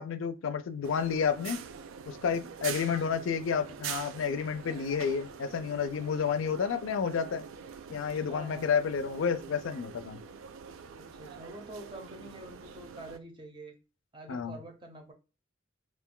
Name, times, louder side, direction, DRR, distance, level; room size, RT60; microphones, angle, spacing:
voice 1, 0.0-1.6 2.1-7.5 7.9-10.2 14.3-14.6, left 6 dB, 85° left, 0.4 m, -30 dB
sound 1, 0.8-13.2, right 7 dB, 90° right, 0.3 m, -44 dB
voice 2, 8.3-8.8 11.0-13.8 14.1-15.1, right 1 dB, 25° right, 0.6 m, -47 dB
2.4 x 2.2 x 3.6 m
head